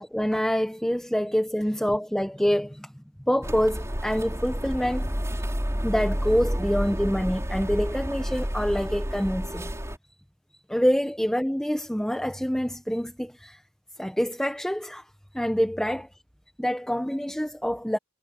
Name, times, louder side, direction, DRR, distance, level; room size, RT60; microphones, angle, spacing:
voice 1, 0.0-5.1 5.8-9.7 10.7-13.6 14.0-15.0 15.3-16.1 16.6-18.0, equal, 5° left, 1.1 m, -26 dB
sound 1, 3.4-10.0, equal, 15° right, 5.1 m, -30 dB
head